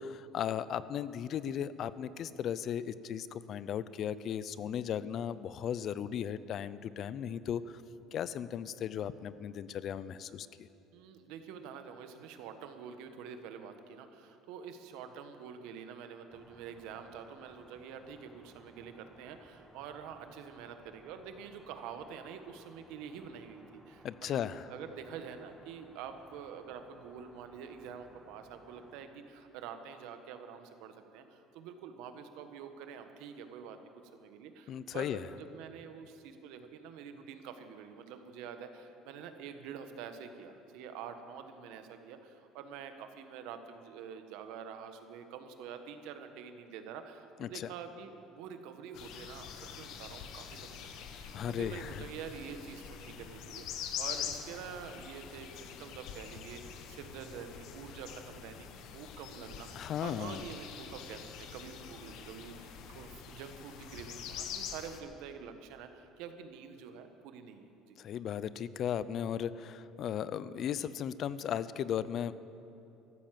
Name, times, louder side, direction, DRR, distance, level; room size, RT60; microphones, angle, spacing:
voice 1, 0.0-7.6 8.1-10.7 24.0-24.7 34.7-35.2 47.4-47.7 51.3-52.0 59.8-60.4 68.0-72.3, left 9 dB, 50° left, 16 dB, 0.5 m, -36 dB
voice 2, 10.9-24.4 24.7-33.8 34.1-68.0, right 7 dB, 80° right, 7 dB, 1.3 m, -47 dB
sound 1, 16.3-29.0, equal, ahead, 1.2 m, -61 dB
sound 2, 48.9-65.0, left 8 dB, 65° left, 1.2 m, -45 dB
14.0 x 12.0 x 7.6 m, 2.8 s
cardioid pair, 120°, 0 cm